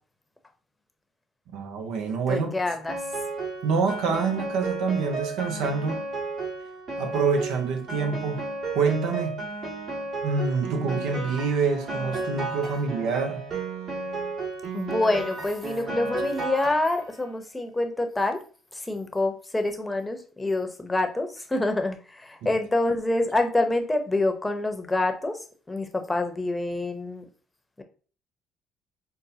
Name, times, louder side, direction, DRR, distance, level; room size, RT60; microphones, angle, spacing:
voice 1, 1.5-2.5 3.6-6.0 7.0-8.5 8.7-9.4 10.2-13.4, right 5 dB, 80° right, 0.7 m, -26 dB
voice 2, 2.3-3.0 14.7-18.4 18.9-25.4 25.7-27.2 27.8-27.9, left 2 dB, 15° left, 0.8 m, -26 dB
Piano, 2.9-17.3, right 3 dB, 55° right, 1.8 m, -33 dB
5.3 x 2.2 x 2.7 m
supercardioid pair, 70°, 0 cm